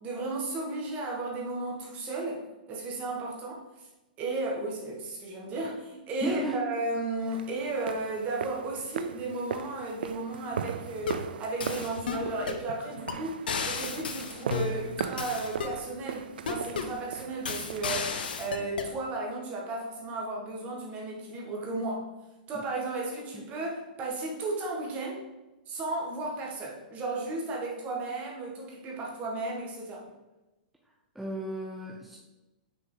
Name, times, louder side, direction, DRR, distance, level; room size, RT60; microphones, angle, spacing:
voice 1, 0.0-2.4 2.7-3.9 4.2-18.1 18.4-22.1 22.5-25.2 25.7-30.1, right 2 dB, 30° right, -2 dB, 1.7 m, -34 dB
voice 2, 6.2-6.6 22.5-22.6 23.3-23.4 31.1-32.2, right 1 dB, 5° right, -3 dB, 0.7 m, -34 dB
sound 1, 7.3-18.4, right 7 dB, 85° right, 0.4 m, -39 dB
sound 2, 10.9-11.3 11.6-12.6 13.1-13.2 13.5-15.8 16.5-17.0 17.5-18.9, left 5 dB, 85° left, 0.8 m, -33 dB
6.1 x 4.9 x 3.9 m, 1.1 s
hypercardioid pair, 140°, 5 cm